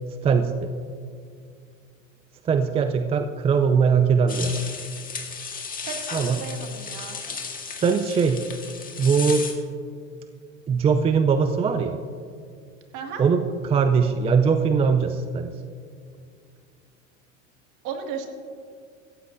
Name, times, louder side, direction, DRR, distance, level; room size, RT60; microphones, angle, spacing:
voice 1, 0.2-0.7 2.4-4.7 6.1-6.4 7.8-8.4 9.0-9.5 10.7-12.0 13.2-15.5, right 5 dB, 15° right, 8 dB, 0.4 m, -21 dB
sound 1, 4.3-9.5, left 5 dB, 20° left, 1.8 m, -35 dB
voice 2, 5.9-7.2 12.9-13.2 17.8-18.3, right 6 dB, 50° right, 3 dB, 2.0 m, -35 dB
16.5 x 14.5 x 2.6 m, 2.3 s
hypercardioid pair, 105°, 39 cm